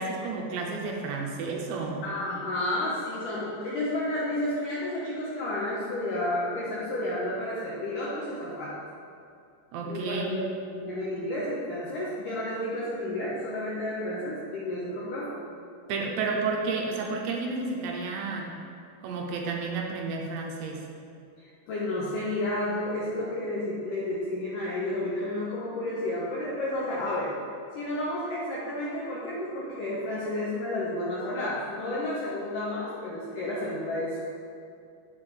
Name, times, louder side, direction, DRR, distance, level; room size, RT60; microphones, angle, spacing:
voice 1, 0.0-2.0 9.7-10.4 15.9-18.5 19.0-20.9, right 4 dB, 85° right, 0 dB, 3.2 m, -31 dB
voice 2, 2.0-8.8 9.9-10.4 10.8-15.4 21.7-27.3 27.7-34.2, left 1 dB, 75° left, -7 dB, 1.9 m, -31 dB
9.3 x 7.3 x 3.5 m, 2.5 s
omnidirectional pair, 5.1 m